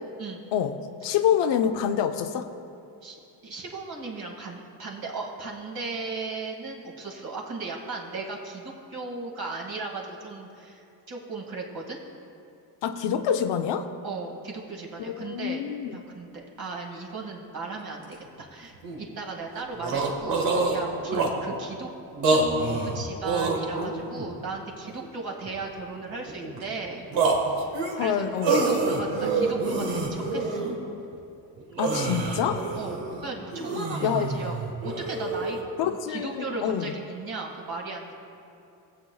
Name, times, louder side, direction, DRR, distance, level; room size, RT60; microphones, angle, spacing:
voice 1, 0.2-0.5 3.0-3.2 3.4-12.0 14.0-15.6 15.9-21.9 22.3-27.1 28.0-30.7 32.7-34.6 34.8-38.1, right 3 dB, 50° right, -1 dB, 2.1 m, -36 dB
voice 2, 1.0-2.5 12.8-13.9 15.1-16.0 27.9-28.6 31.8-32.7 34.0-34.3 35.8-36.9, left 8 dB, 70° left, 8 dB, 0.6 m, -26 dB
Male Screams, 17.8-17.9 18.1-18.2 18.8-19.0 19.4-19.5 19.7-21.5 22.1-24.3 24.9-25.7 26.1-26.8 27.1-30.8 31.1-31.2 31.6-35.6, right 3 dB, 80° right, 1.6 m, -27 dB
19.5 x 7.9 x 2.3 m, 2.7 s
cardioid pair, 85°, 45 cm